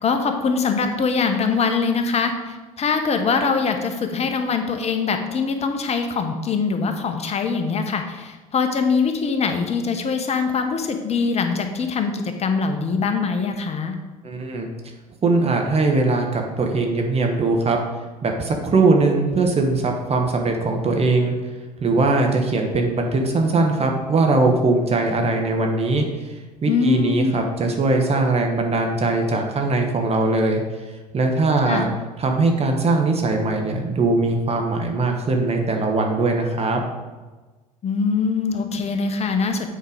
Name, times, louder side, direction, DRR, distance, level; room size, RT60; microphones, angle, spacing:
voice 1, 0.0-14.0 26.7-27.3 31.7-31.8 37.8-39.7, left 5 dB, 35° left, 6 dB, 1.2 m, -23 dB
voice 2, 14.2-14.7 15.2-17.8 18.2-21.4 21.8-26.4 26.6-30.6 31.1-31.9 32.2-36.8, right 3 dB, 35° right, 3 dB, 1.3 m, -20 dB
8.1 x 4.5 x 5.1 m, 1.3 s
hypercardioid pair, 70°, 19 cm